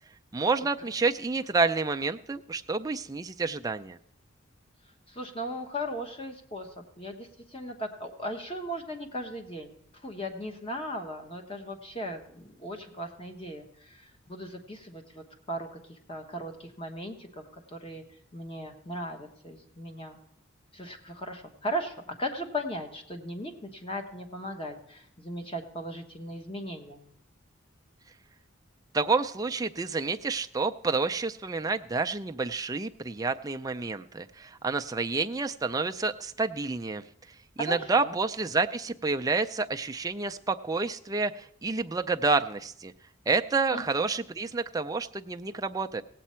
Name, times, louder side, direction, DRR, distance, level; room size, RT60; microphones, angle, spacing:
voice 1, 0.3-4.0 28.9-37.0 37.6-42.9 43.3-46.0, right 4 dB, 15° right, 6 dB, 0.3 m, -29 dB
voice 2, 5.1-9.7 10.0-18.0 18.3-20.2 20.7-27.0 37.6-38.1 43.7-43.8, equal, 25° left, 4 dB, 1.1 m, -37 dB
16.5 x 8.3 x 4.3 m, 0.75 s
head